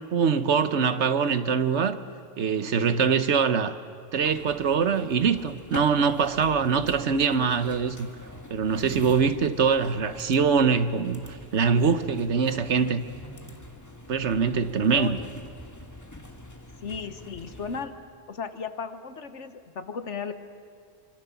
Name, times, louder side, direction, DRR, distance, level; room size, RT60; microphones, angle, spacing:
voice 1, 0.1-2.0 2.4-3.8 4.1-8.1 8.5-13.0 14.1-15.2, right 6 dB, 75° right, 1.3 m, -23 dB
sound 1, 4.1-17.9, left 1 dB, 15° left, 1.7 m, -44 dB
voice 2, 14.9-15.3 16.8-17.9 18.3-20.3, left 6 dB, 75° left, 1.6 m, -35 dB
26.5 x 25.0 x 7.1 m
omnidirectional pair, 1.2 m